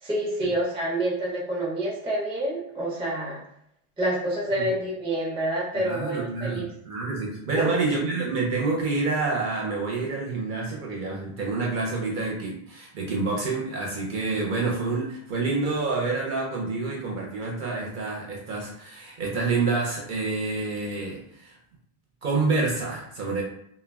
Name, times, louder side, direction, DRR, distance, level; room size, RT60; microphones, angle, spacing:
voice 1, 0.0-3.4 4.0-6.6 7.5-7.8, right 1 dB, 10° right, -4 dB, 0.4 m, -28 dB
voice 2, 5.8-21.6 22.2-23.4, right 3 dB, 60° right, -2 dB, 0.6 m, -28 dB
2.2 x 2.1 x 3.3 m, 0.71 s
omnidirectional pair, 1.1 m